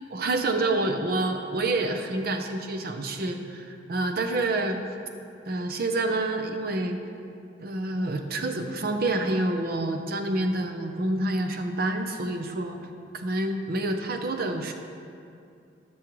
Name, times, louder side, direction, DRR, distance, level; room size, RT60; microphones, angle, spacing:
voice 1, 0.1-4.8 5.5-7.0 7.6-12.8 13.2-14.7, right 2 dB, 55° right, 5 dB, 0.7 m, -28 dB
13.5 x 6.3 x 3.1 m, 2.5 s
head